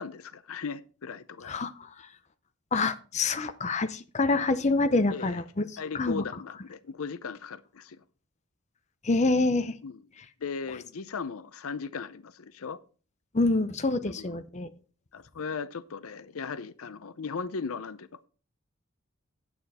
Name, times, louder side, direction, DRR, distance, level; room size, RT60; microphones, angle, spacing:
voice 1, 0.0-1.6 5.1-5.4 5.8-8.0 9.8-10.0 10.4-12.8 14.0-14.4 15.1-18.3, left 5 dB, 85° left, 0.6 m, -37 dB
voice 2, 1.5-1.9 2.7-6.2 9.0-9.7 13.3-14.7, left 3 dB, 35° left, 0.7 m, -26 dB
9.3 x 8.5 x 4.2 m
head